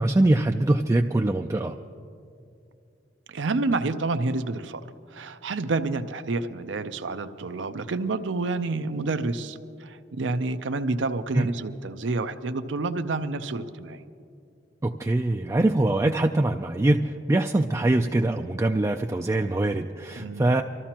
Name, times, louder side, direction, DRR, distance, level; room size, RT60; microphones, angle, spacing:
voice 1, 0.0-1.8 11.3-11.5 14.8-20.6, right 2 dB, 15° right, 3 dB, 0.3 m, -23 dB
voice 2, 3.3-4.8 5.1-14.0 20.2-20.5, right 3 dB, 80° right, 10 dB, 0.6 m, -29 dB
25.0 x 14.0 x 2.9 m, 2.5 s
head